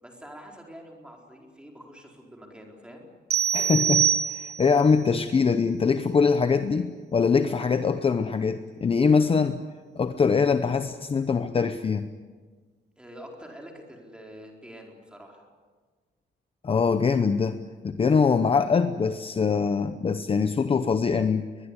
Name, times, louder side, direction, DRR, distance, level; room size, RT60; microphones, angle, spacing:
voice 1, 0.0-3.1 13.0-15.5, equal, 5° right, 1 dB, 4.3 m, -46 dB
sound 1, 3.3-4.8, right 9 dB, 60° right, 1.3 m, -24 dB
voice 2, 3.5-9.6 9.9-12.0 16.6-21.5, left 5 dB, 30° left, 9 dB, 0.8 m, -23 dB
22.5 x 21.0 x 9.8 m, 1.4 s
wide cardioid pair, 175°, 18 cm